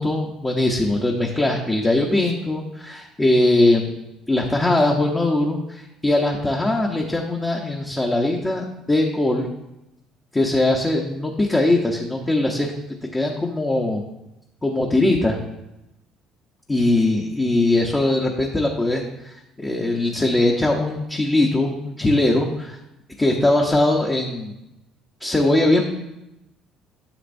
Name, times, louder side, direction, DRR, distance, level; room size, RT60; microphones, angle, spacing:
voice 1, 0.0-3.9 4.3-9.5 10.3-12.7 13.1-14.0 14.6-15.4 16.7-22.8 23.2-24.5 25.2-25.9, left 2 dB, 15° left, 0 dB, 0.8 m, -21 dB
10.0 x 7.1 x 2.6 m, 0.91 s
cardioid pair, 135°, 0 cm